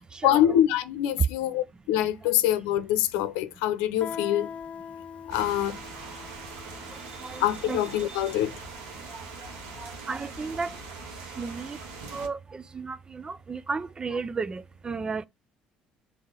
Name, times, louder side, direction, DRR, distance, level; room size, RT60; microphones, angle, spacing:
voice 1, 0.2-4.5 5.3-5.8 7.4-8.6, left 12 dB, 90° left, 0.7 m, -25 dB
Guitar, 4.0-9.5, left 7 dB, 40° left, 0.5 m, -43 dB
sound 1, 5.3-12.3, right 4 dB, 90° right, 1.8 m, -42 dB
voice 2, 7.2-7.8 8.1-8.2 9.1-9.2 9.8-10.8 11.4-11.8 12.1-15.3, right 5 dB, 25° right, 0.4 m, -33 dB
5.5 x 3.5 x 5.0 m
supercardioid pair, 85°, 3 cm